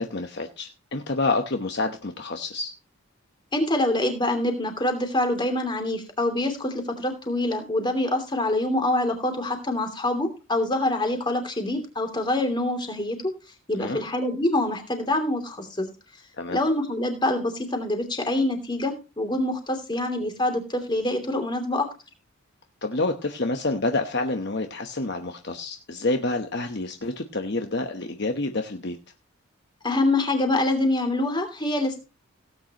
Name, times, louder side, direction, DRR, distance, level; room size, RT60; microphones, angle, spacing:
voice 1, 0.0-2.7 13.7-14.0 16.3-16.6 22.8-29.0, left 2 dB, 50° left, 5 dB, 1.0 m, -28 dB
voice 2, 3.5-13.2 13.7-15.9 16.5-21.9 29.8-32.0, left 1 dB, 20° left, 5 dB, 2.9 m, -25 dB
17.5 x 9.2 x 3.0 m, 0.31 s
head